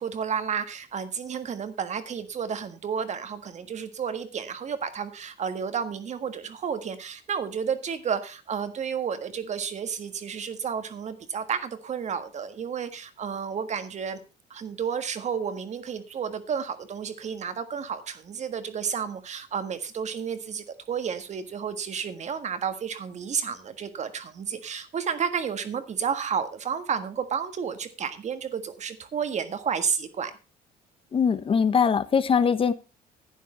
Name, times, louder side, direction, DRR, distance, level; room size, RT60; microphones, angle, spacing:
voice 1, 0.0-14.2 14.5-30.3, right 7 dB, 45° right, 10 dB, 1.6 m, -31 dB
voice 2, 31.1-32.7, left 6 dB, 30° left, 14 dB, 1.0 m, -22 dB
11.0 x 9.3 x 4.3 m, 0.30 s
cardioid pair, 110°, 17 cm